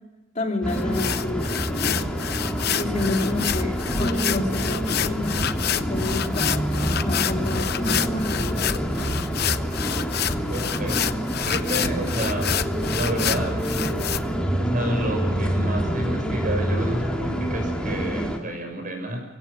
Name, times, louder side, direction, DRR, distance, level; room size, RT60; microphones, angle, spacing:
voice 1, 0.3-2.0 2.7-5.4 5.7-6.7 7.0-8.7, left 2 dB, 40° left, 2 dB, 2.8 m, -29 dB
sound 1, 0.6-18.4, equal, 5° left, 2.6 m, -27 dB
sound 2, 0.7-14.2, left 9 dB, 55° left, 0.8 m, -28 dB
voice 2, 10.3-11.0 11.4-12.6 12.9-13.6 14.6-19.2, right 1 dB, 45° right, 3 dB, 6.4 m, -30 dB
24.0 x 16.5 x 6.8 m, 1.2 s
head